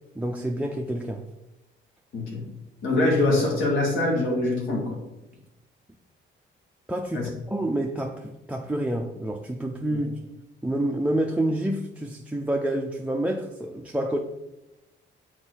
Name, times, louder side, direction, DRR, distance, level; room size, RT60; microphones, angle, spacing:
voice 1, 0.2-1.2 6.9-10.1 10.6-14.2, right 1 dB, 5° right, 0.6 m, -28 dB
voice 2, 2.1-2.4 2.8-5.0 7.1-7.3 9.9-10.0, left 2 dB, 85° left, 2.0 m, -24 dB
6.5 x 4.4 x 4.5 m
cardioid pair, 90°, 20 cm